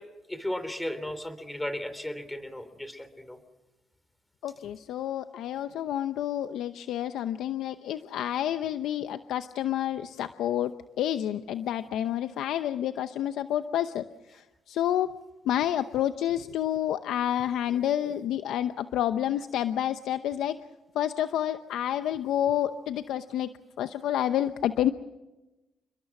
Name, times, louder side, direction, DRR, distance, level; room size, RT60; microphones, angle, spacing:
voice 1, 0.3-3.4 18.1-18.2, left 1 dB, 10° left, 11 dB, 3.5 m, -35 dB
voice 2, 4.4-15.1 15.4-20.6 20.9-23.5 23.8-24.9, left 11 dB, 85° left, 10 dB, 0.8 m, -29 dB
29.5 x 21.5 x 6.1 m, 1.0 s
cardioid pair, 90°, 0 cm